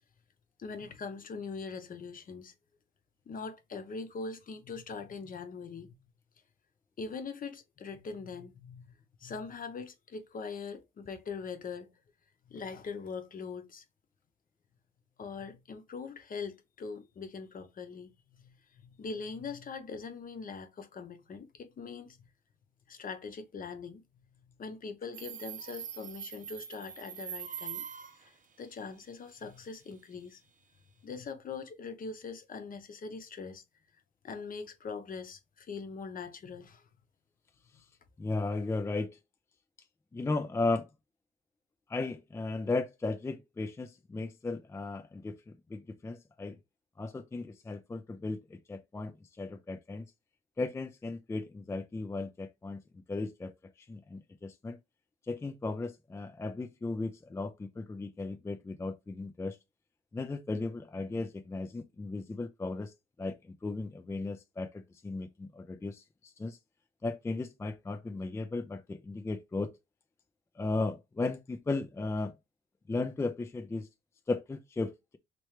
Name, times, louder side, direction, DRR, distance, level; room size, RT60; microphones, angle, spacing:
voice 1, 0.6-2.5 3.3-5.9 7.0-8.9 9.2-11.9 12.5-13.8 15.2-18.1 18.4-22.2 22.9-24.0 24.6-27.8 28.2-30.4 31.0-33.6 34.2-36.8, left 5 dB, 45° left, 0.8 m, -42 dB
Subway metro underground, 25.1-28.3, right 9 dB, 40° right, 0.6 m, -42 dB
voice 2, 38.2-39.2 40.1-40.9 41.9-46.6 47.0-50.1 50.6-54.8 55.3-59.6 60.1-62.9 63.2-66.6 67.0-69.7 70.6-72.4 72.9-73.9 74.3-75.2, left 3 dB, 15° left, 0.3 m, -36 dB
3.2 x 3.0 x 3.1 m
cardioid pair, 90°, 20 cm